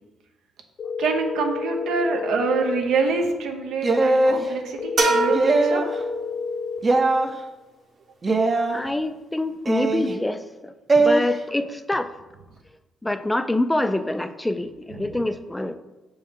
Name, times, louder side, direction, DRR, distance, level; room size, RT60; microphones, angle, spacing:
sound 1, 0.8-2.8 4.8-6.8, left 5 dB, 65° left, 0.9 m, -30 dB
voice 1, 1.0-5.8 14.9-15.2, right 4 dB, 80° right, 4 dB, 0.8 m, -26 dB
sound 2, 3.8-4.4 5.3-5.9 6.8-7.3 8.2-8.8 9.7-10.1 10.9-11.2, right 2 dB, 30° right, 0.6 m, -20 dB
sound 3, 5.0-6.7, right 3 dB, 50° right, 1.2 m, -25 dB
voice 2, 8.7-12.1 13.0-15.7, left 1 dB, 10° left, 10 dB, 0.3 m, -26 dB
6.4 x 4.4 x 3.6 m, 1.1 s
cardioid pair, 90°, 0 cm